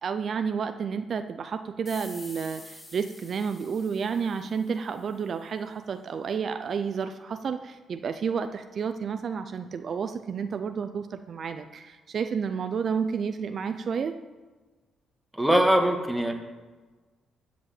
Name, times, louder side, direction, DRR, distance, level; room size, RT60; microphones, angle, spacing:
voice 1, 0.0-14.2, right 6 dB, 50° right, 9 dB, 0.6 m, -31 dB
sound 1, 1.9-5.2, left 2 dB, 20° left, 1.9 m, -48 dB
voice 2, 15.3-16.3, right 1 dB, 5° right, 3 dB, 1.8 m, -22 dB
13.5 x 5.2 x 7.8 m, 1.3 s
cardioid pair, 90°, 0 cm